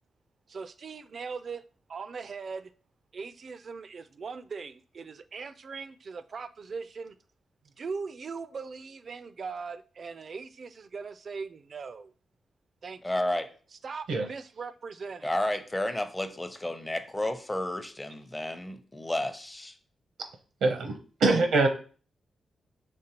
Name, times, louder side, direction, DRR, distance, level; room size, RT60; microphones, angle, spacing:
voice 1, 0.5-1.6 1.9-2.7 3.1-7.2 7.6-12.1 12.8-13.0 13.8-15.3, right 5 dB, 55° right, 0.4 m, -40 dB
voice 2, 13.0-13.5 15.2-19.8, left 1 dB, 15° left, 0.6 m, -31 dB
voice 3, 20.6-21.7, right 3 dB, 85° right, 0.7 m, -24 dB
5.1 x 3.5 x 2.9 m
cardioid pair, 65°, 0 cm